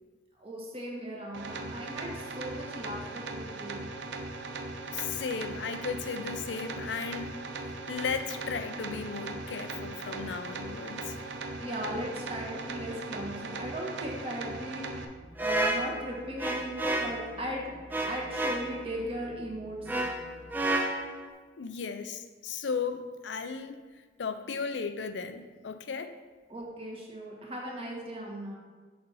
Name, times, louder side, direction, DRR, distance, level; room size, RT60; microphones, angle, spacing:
voice 1, 0.4-2.1 2.4-3.8 11.6-15.1 15.4-17.7 18.1-19.8 26.5-28.6, right 1 dB, 30° right, -2 dB, 1.5 m, -37 dB
sound 1, 1.3-15.1, right 3 dB, 85° right, 0.7 m, -39 dB
voice 2, 4.9-7.4 7.7-11.2 21.6-23.8 24.2-26.1, left 5 dB, 90° left, 10 dB, 0.5 m, -35 dB
sound 2, 15.1-20.7, left 1 dB, 60° left, 0.9 m, -52 dB
sound 3, 15.4-17.3 17.9-18.8 19.9-21.3, right 1 dB, 10° right, 0.5 m, -30 dB
6.7 x 4.3 x 5.5 m, 1.4 s
head